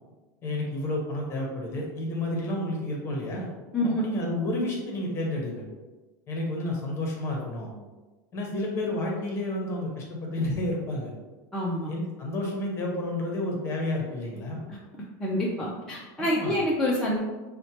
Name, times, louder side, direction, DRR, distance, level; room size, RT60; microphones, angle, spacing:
voice 1, 0.4-3.5 3.8-5.6 6.3-7.7 8.3-11.1 11.9-14.7 16.2-16.6, left 1 dB, 25° left, -1 dB, 0.7 m, -30 dB
voice 2, 11.5-11.9 14.7-14.8 15.2-17.2, left 1 dB, 5° left, -7 dB, 0.3 m, -27 dB
4.3 x 2.1 x 2.8 m, 1.2 s
supercardioid pair, 160°, 10 cm